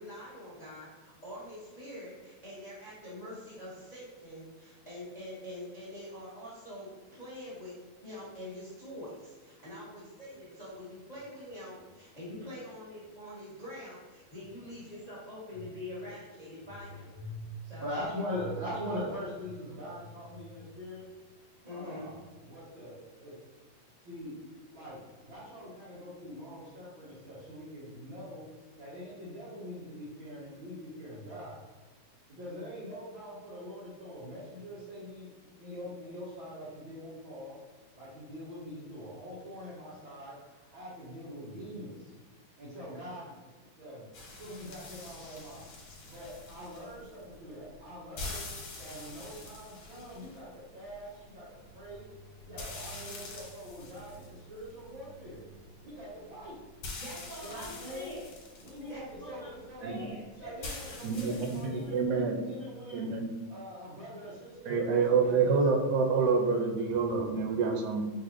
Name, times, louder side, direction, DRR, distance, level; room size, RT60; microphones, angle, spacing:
voice 1, 0.0-7.8 8.0-17.1 17.6-18.0 21.6-22.1 57.0-58.2 58.7-60.7, left 1 dB, 55° left, -9 dB, 0.4 m, -45 dB
voice 2, 17.1-17.5 17.8-21.0 21.7-23.4 24.0-24.3 24.7-25.0 25.2-28.4 28.8-31.6 32.3-35.3 35.6-37.6 37.9-42.1 42.6-43.3 43.8-44.1 44.4-45.6 46.1-48.4 48.8-51.5 51.7-52.0 52.4-55.4 55.8-56.6 57.4-58.1 58.6-60.0 60.4-63.1 63.5-65.6, equal, 60° right, -9 dB, 1.3 m, -43 dB
sound 1, 44.1-62.0, left 2 dB, 70° left, 2.2 m, -46 dB
voice 3, 61.0-62.4 62.9-63.3 64.7-68.1, right 4 dB, 90° right, 2 dB, 2.0 m, -27 dB
6.0 x 2.6 x 2.9 m, 1.3 s
omnidirectional pair, 3.4 m